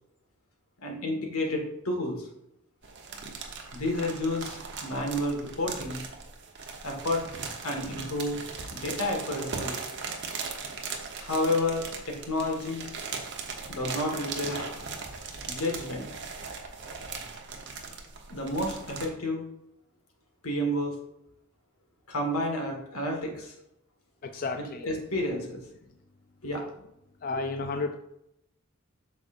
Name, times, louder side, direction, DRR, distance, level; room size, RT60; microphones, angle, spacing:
voice 1, 0.8-2.3 3.1-3.2 3.7-6.0 6.8-7.2 7.6-8.4 8.7-9.8 11.2-12.9 13.7-14.7 15.5-16.1 18.3-19.4 20.4-20.9 22.1-23.5 24.6-25.6 26.4-26.6 27.3-27.4, left 1 dB, 85° left, 1 dB, 1.8 m, -30 dB
sound 1, 2.8-19.1, right 4 dB, 55° right, 1.0 m, -39 dB
voice 2, 24.2-24.9 27.2-28.0, left 3 dB, 40° left, 6 dB, 0.4 m, -32 dB
8.4 x 6.4 x 2.6 m, 0.81 s
head